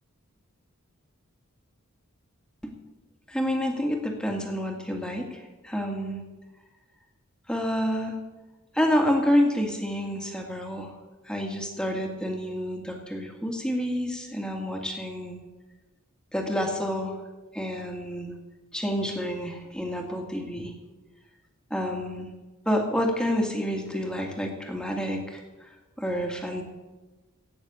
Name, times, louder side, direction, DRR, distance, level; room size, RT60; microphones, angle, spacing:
voice 1, 3.3-6.2 7.5-8.2 8.7-10.9 11.3-15.4 16.3-17.2 17.5-18.3 18.7-20.7 21.7-22.3 22.7-25.4 26.0-26.6, equal, 5° left, 1 dB, 2.0 m, -28 dB
16.5 x 6.6 x 8.4 m, 1.2 s
head